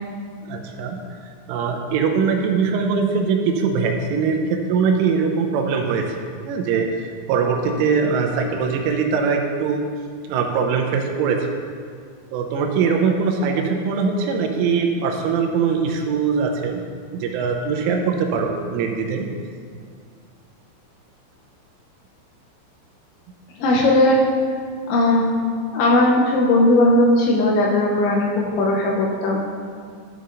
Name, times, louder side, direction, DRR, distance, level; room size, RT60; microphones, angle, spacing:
voice 1, 0.4-1.0 1.5-6.2 6.4-9.8 10.3-11.5 12.3-16.8 17.1-19.3, right 5 dB, 85° right, 3 dB, 3.1 m, -22 dB
voice 2, 23.6-24.2 24.9-25.3 25.7-29.4, left 1 dB, 80° left, -2 dB, 2.8 m, -17 dB
12.5 x 6.7 x 2.6 m, 2.1 s
omnidirectional pair, 5.7 m